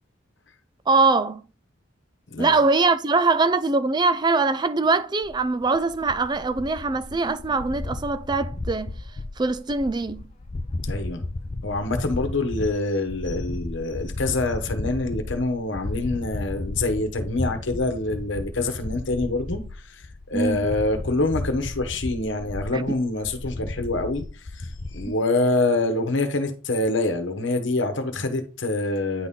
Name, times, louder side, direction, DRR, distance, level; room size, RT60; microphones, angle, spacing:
voice 1, 0.9-1.4 2.4-8.9 9.4-10.2 20.3-20.6 22.7-22.8 25.1-25.2, right 3 dB, 20° right, 0.4 m, -22 dB
sound 1, 5.2-25.1, left 2 dB, 30° left, 0.5 m, -34 dB
voice 2, 10.9-11.2 11.6-29.3, left 2 dB, 60° left, 1.2 m, -26 dB
9.5 x 4.1 x 3.7 m
head